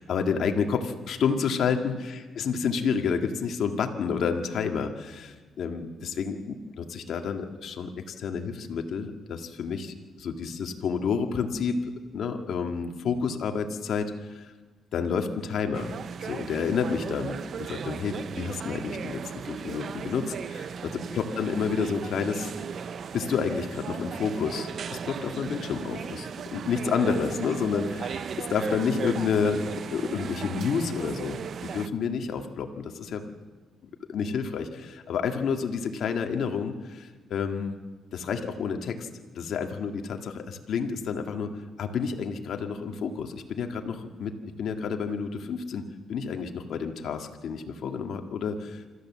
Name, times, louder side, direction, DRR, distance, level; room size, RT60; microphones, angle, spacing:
voice 1, 0.0-14.5 14.9-15.9 16.2-22.5 23.1-29.6 29.9-33.2 34.1-37.7 38.1-39.1 39.3-41.5 41.8-45.8 46.1-48.8, left 6 dB, 65° left, 4 dB, 2.0 m, -30 dB
sound 1, 15.7-31.9, right 7 dB, 55° right, 0.7 m, -36 dB
27.0 x 13.5 x 7.5 m, 1.4 s
cardioid pair, 90°, 0 cm